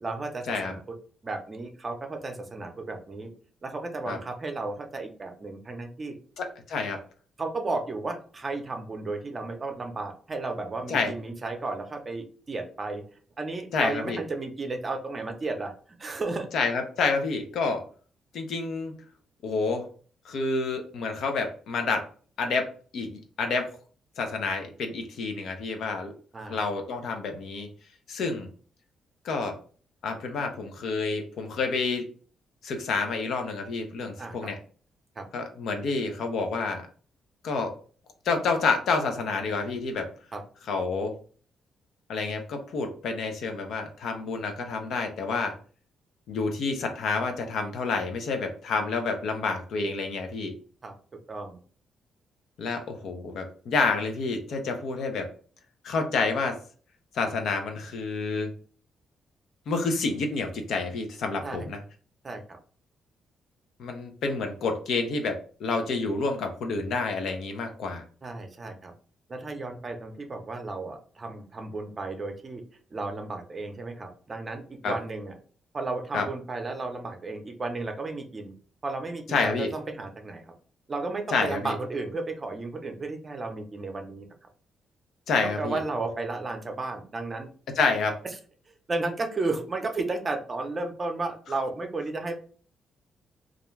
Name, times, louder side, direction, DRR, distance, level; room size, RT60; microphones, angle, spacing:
voice 1, 0.0-0.8 1.2-3.3 3.6-6.2 7.4-13.0 13.4-15.7 16.0-16.5 26.3-26.6 34.2-34.5 35.2-35.3 40.3-40.4 50.8-50.9 51.3-51.6 61.4-61.7 62.2-62.6 68.2-68.9 69.3-72.6 72.9-75.3 75.7-78.5 78.8-80.5 80.9-84.3 85.6-87.5 88.7-92.4, right 3 dB, 30° right, 4 dB, 0.5 m, -33 dB
voice 2, 6.4-7.0 10.9-11.1 13.7-14.2 16.5-17.8 18.3-18.9 19.4-19.8 20.2-22.1 22.4-23.8 24.2-26.1 26.5-27.7 28.1-28.5 29.2-29.6 30.0-32.0 32.6-34.6 35.3-36.9 37.4-37.7 38.3-40.1 40.7-41.1 42.1-45.6 46.3-50.6 52.6-55.3 55.8-56.6 57.1-58.5 59.7-61.8 63.8-68.0 74.8-74.9 76.1-76.3 79.3-79.7 81.3-81.7 85.3-85.8 87.8-88.2, left 4 dB, 75° left, 5 dB, 0.5 m, -28 dB
2.4 x 2.2 x 3.1 m, 0.42 s
cardioid pair, 105°, 0 cm